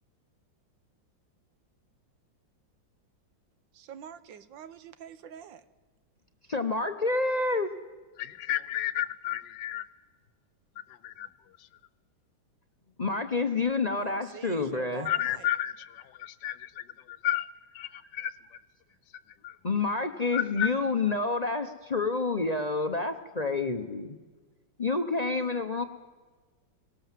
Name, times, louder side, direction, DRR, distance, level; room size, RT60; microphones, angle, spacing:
voice 1, 3.7-5.6 14.0-15.5, right 8 dB, 90° right, 1.6 m, -46 dB
voice 2, 6.5-7.7 13.0-15.1 19.6-24.2 24.8-25.8, left 3 dB, 35° left, 0.6 m, -28 dB
voice 3, 8.2-9.8 10.9-11.3 11.6-11.7 15.0-17.5 17.7-18.3 19.4-19.6 20.3-20.7, left 12 dB, 75° left, 1.4 m, -32 dB
19.5 x 18.0 x 7.5 m
omnidirectional pair, 2.0 m